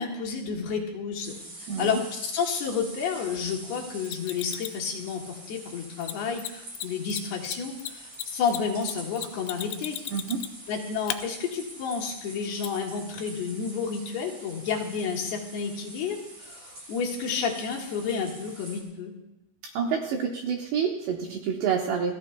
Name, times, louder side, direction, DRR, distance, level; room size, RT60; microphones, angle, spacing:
voice 1, 0.0-1.4 1.8-10.0 10.7-19.1, left 6 dB, 65° left, -3 dB, 3.5 m, -31 dB
sound 1, 1.2-18.8, right 2 dB, 35° right, 4.2 m, -45 dB
voice 2, 1.7-2.0 10.1-10.4 19.7-22.2, right 7 dB, 75° right, 1 dB, 2.9 m, -28 dB
Mechanisms, 4.1-4.8 6.0-6.1 6.4-6.5 6.7-6.9 7.1-10.7 11.1-11.2 12.6-12.7, left 13 dB, 90° left, 3.3 m, -34 dB
29.5 x 14.5 x 2.3 m, 0.91 s
omnidirectional pair, 5.5 m